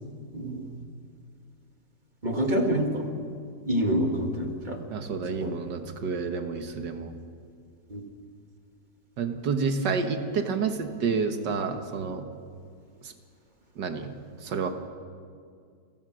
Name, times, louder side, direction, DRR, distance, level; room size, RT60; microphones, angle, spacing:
voice 1, 0.3-0.7 2.2-3.0 3.7-4.8 5.4-5.5 7.9-8.0, equal, 25° right, 2 dB, 2.1 m, -26 dB
voice 2, 4.9-7.2 9.2-12.3 13.0-13.1 13.8-14.1 14.4-14.7, right 5 dB, 80° right, 6 dB, 1.9 m, -29 dB
29.0 x 15.5 x 6.3 m, 2.2 s
omnidirectional pair, 1.9 m